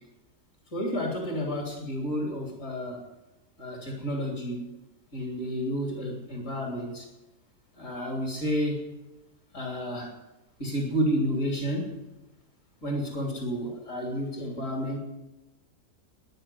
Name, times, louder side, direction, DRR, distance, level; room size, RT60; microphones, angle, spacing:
voice 1, 0.7-3.0 3.6-4.7 5.1-7.1 7.8-8.9 9.5-10.1 10.6-11.9 12.8-15.0, equal, 60° left, 0 dB, 3.5 m, -30 dB
13.0 x 10.0 x 9.5 m, 1.0 s
omnidirectional pair, 1.5 m